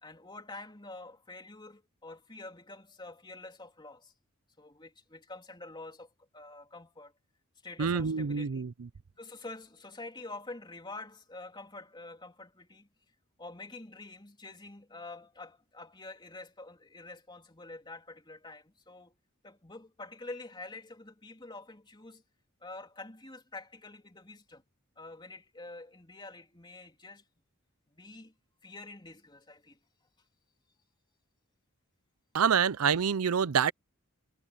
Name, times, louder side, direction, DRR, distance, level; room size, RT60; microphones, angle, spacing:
voice 1, 0.0-4.1 4.6-7.1 7.6-8.6 9.1-12.9 13.4-19.1 19.4-22.2 22.6-24.6 25.0-27.2 27.9-28.3 28.6-29.8, left 2 dB, 20° left, 3.3 m, -47 dB
voice 2, 7.8-8.9 32.3-33.7, right 7 dB, 85° right, 0.6 m, -27 dB
head